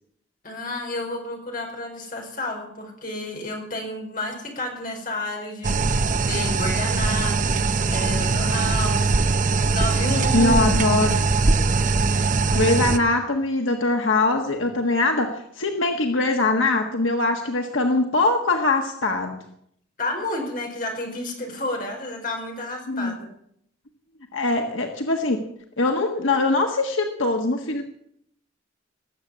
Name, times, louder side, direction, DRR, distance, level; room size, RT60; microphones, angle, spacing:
voice 1, 0.4-9.3 9.7-10.7 20.0-23.3, left 1 dB, 45° left, 1 dB, 5.2 m, -31 dB
sound 1, 5.6-13.0, right 3 dB, 40° right, 0.8 m, -21 dB
voice 2, 10.3-11.2 12.5-19.4 22.9-23.2 24.3-25.4 25.8-27.8, left 2 dB, 85° left, 3 dB, 1.6 m, -22 dB
19.5 x 7.9 x 8.6 m, 0.71 s
head